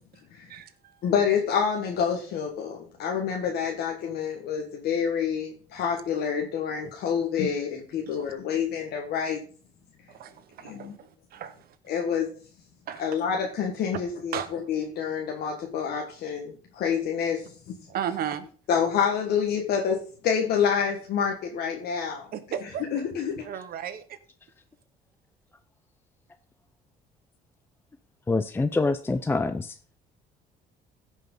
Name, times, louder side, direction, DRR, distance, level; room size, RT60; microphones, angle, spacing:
voice 1, 0.5-1.0 6.8-6.9 8.1-8.3 10.1-11.7 12.9-13.1 14.3-14.5 17.9-18.5 22.3-23.0 23.4-24.2, right 9 dB, 65° right, 10 dB, 1.4 m, -35 dB
voice 2, 1.0-9.4 10.6-10.9 11.9-12.3 13.0-17.7 18.7-22.3 22.9-23.4, left 7 dB, 70° left, 1 dB, 1.6 m, -27 dB
voice 3, 28.3-29.8, left 3 dB, 15° left, 10 dB, 0.5 m, -25 dB
16.0 x 5.4 x 3.9 m, 0.41 s
cardioid pair, 110°, 17 cm